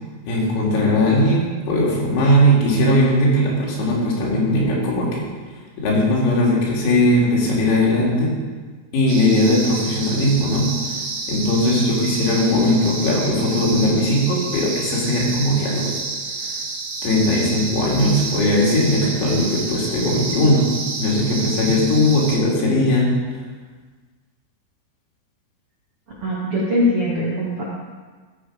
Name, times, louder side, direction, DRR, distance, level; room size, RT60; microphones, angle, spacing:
voice 1, 0.3-5.3 5.8-8.3 8.9-11.0 11.3-16.0 16.5-16.6 17.0-20.7 21.0-23.1, left 1 dB, 85° left, -4 dB, 5.4 m, -19 dB
sound 1, 9.1-22.4, right 3 dB, 60° right, 3.9 m, -30 dB
voice 2, 26.2-27.6, left 1 dB, 85° right, -6 dB, 1.2 m, -21 dB
15.5 x 7.4 x 5.0 m, 1.4 s
omnidirectional pair, 6.0 m